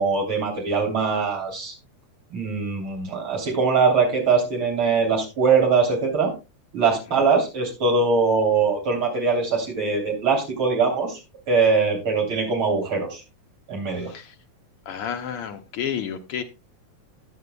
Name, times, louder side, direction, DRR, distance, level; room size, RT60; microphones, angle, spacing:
voice 1, 0.0-1.7 2.3-6.3 6.7-11.2 11.5-13.2 13.7-14.1, right 4 dB, 45° right, 0 dB, 4.0 m, -22 dB
voice 2, 14.0-14.3 14.9-16.4, left 8 dB, 75° left, 5 dB, 1.3 m, -31 dB
14.5 x 9.7 x 2.3 m, 0.27 s
omnidirectional pair, 3.4 m